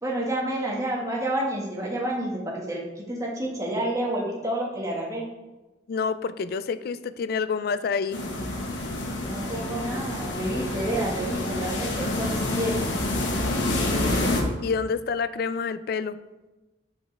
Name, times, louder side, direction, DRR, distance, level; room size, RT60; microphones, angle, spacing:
voice 1, 0.0-5.3 9.2-12.8, right 1 dB, 20° right, -4 dB, 1.6 m, -29 dB
voice 2, 5.9-8.2 14.6-16.2, left 5 dB, 55° left, 14 dB, 0.3 m, -28 dB
sound 1, 8.1-14.4, left 1 dB, 90° left, 1.3 m, -28 dB
7.1 x 6.3 x 3.3 m, 1.1 s
head